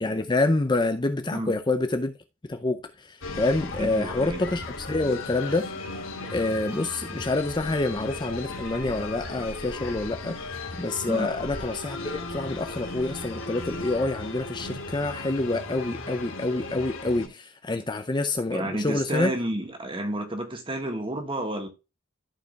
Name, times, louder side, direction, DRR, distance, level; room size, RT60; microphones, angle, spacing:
voice 1, 0.0-2.1 2.5-5.7 6.3-10.4 10.7-19.3, left 2 dB, 20° left, 0.5 m, -27 dB
sound 1, 3.2-17.3, left 3 dB, 75° left, 2.0 m, -36 dB
voice 2, 3.8-4.4 11.1-11.3 18.5-21.7, right 1 dB, 25° right, 1.5 m, -31 dB
14.0 x 4.8 x 2.3 m
head